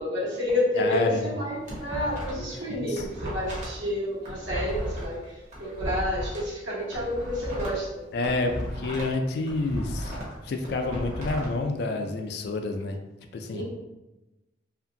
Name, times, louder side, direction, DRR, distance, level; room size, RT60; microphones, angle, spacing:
voice 1, 0.0-5.2 5.6-8.0 13.5-13.6, left 1 dB, 80° right, -6 dB, 1.1 m, -29 dB
voice 2, 0.8-1.3 2.3-2.5 2.8-3.1 8.1-10.2 10.4-13.0 13.3-13.6, left 3 dB, 55° left, 5 dB, 0.3 m, -29 dB
sound 1, 1.3-2.5 2.8-6.4 6.8-9.2 9.4-11.5, equal, 40° right, 0.8 m, -35 dB
2.8 x 2.5 x 2.6 m, 1.0 s
head